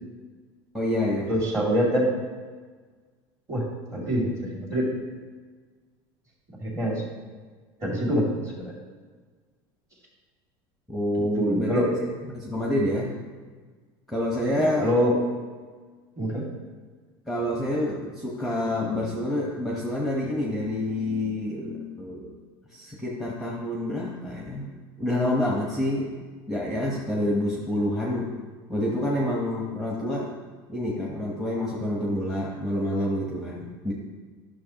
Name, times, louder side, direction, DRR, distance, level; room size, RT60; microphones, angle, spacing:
voice 1, 0.7-1.4 10.9-11.8 12.3-13.1 14.1-14.9 17.3-22.3 22.7-26.1 26.5-28.3 28.7-30.3 30.7-33.9, left 1 dB, ahead, -3 dB, 1.0 m, -27 dB
voice 2, 1.3-2.1 3.5-3.7 3.9-4.9 6.6-7.0 7.8-8.7 11.3-11.9 14.6-15.2 16.2-16.5, equal, 25° right, -2 dB, 2.4 m, -25 dB
10.5 x 6.4 x 2.9 m, 1.5 s
supercardioid pair, 130°, 12 cm